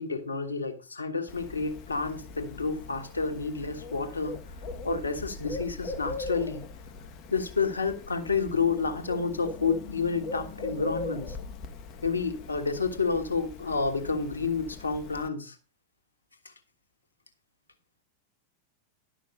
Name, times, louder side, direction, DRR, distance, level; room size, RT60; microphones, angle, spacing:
voice 1, 0.0-4.4 4.8-6.6 7.3-11.4 12.0-15.6, left 4 dB, 75° left, 1.4 m, -30 dB
Bird, 1.3-15.3, left 3 dB, 35° left, 1.1 m, -40 dB
11.5 x 6.1 x 5.4 m
figure-of-eight pair, 90°, 0 cm